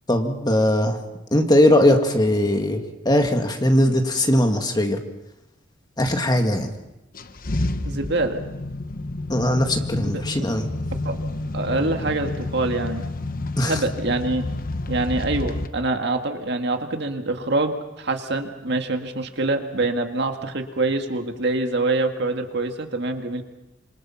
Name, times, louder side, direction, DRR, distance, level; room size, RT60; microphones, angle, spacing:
voice 1, 0.1-1.0 1.3-5.0 6.0-6.7 9.3-10.7 13.6-13.8, left 1 dB, 20° left, 4 dB, 2.1 m, -20 dB
sound 1, 7.1-15.7, left 2 dB, 50° left, 1.1 m, -29 dB
voice 2, 7.9-8.4 10.0-10.2 11.0-11.2 11.5-13.0 13.6-14.5 14.9-23.4, right 2 dB, 60° right, 5 dB, 2.0 m, -25 dB
27.0 x 24.5 x 5.8 m, 0.92 s
head